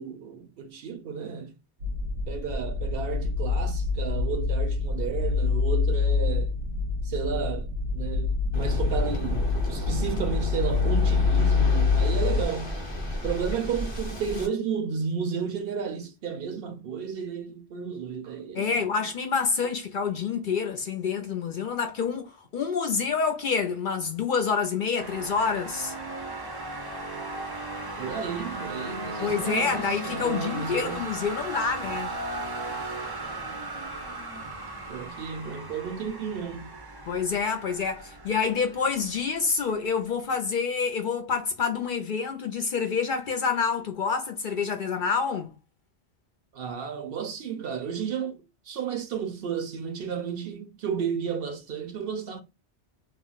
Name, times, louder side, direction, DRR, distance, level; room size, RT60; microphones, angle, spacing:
voice 1, 0.0-1.5 2.3-6.5 7.0-12.8 13.2-18.9 28.0-31.1 34.9-36.8 46.5-52.4, right 6 dB, 65° right, 0.7 m, -32 dB
sound 1, 1.8-12.4, left 4 dB, 80° right, 1.0 m, -26 dB
Waves surf, 8.5-14.5, equal, 25° left, 0.8 m, -34 dB
voice 2, 18.5-25.9 29.2-32.1 37.1-45.5, left 5 dB, 60° left, 0.6 m, -27 dB
sound 2, 25.0-39.8, right 2 dB, 30° right, 0.4 m, -37 dB
2.4 x 2.1 x 3.7 m
omnidirectional pair, 1.2 m